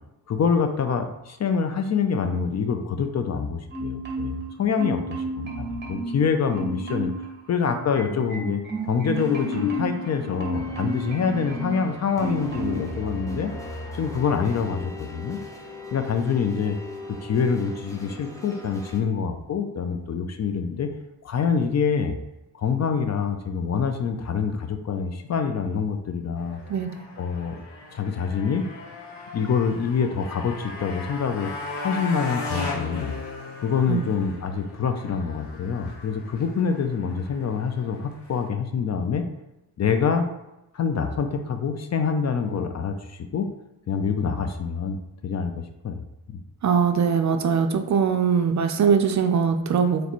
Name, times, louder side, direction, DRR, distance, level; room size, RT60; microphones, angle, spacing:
voice 1, 0.3-7.1 7.5-13.5 13.9-15.4 15.9-16.8 17.1-20.9 21.2-22.2 22.5-26.6 27.2-27.6 27.9-28.6 29.3-31.5 31.8-33.1 33.6-39.2 39.8-40.3 40.7-43.5 43.9-45.0 45.2-46.0 46.3-46.4, left 6 dB, 40° left, 7 dB, 0.5 m, -26 dB
Marimba xylophone, 3.7-4.5 4.8-6.2 6.5-7.3 7.6-11.8 12.2-12.9 13.3-13.5, equal, 25° right, 1.1 m, -31 dB
sound 1, 8.8-19.0, left 1 dB, 10° left, 0.7 m, -39 dB
Motorcycle, 26.4-38.5, left 3 dB, 75° left, 1.1 m, -37 dB
voice 2, 46.6-50.0, right 6 dB, 45° right, 7 dB, 0.5 m, -21 dB
4.1 x 3.1 x 3.0 m, 0.92 s
cardioid pair, 75°, 41 cm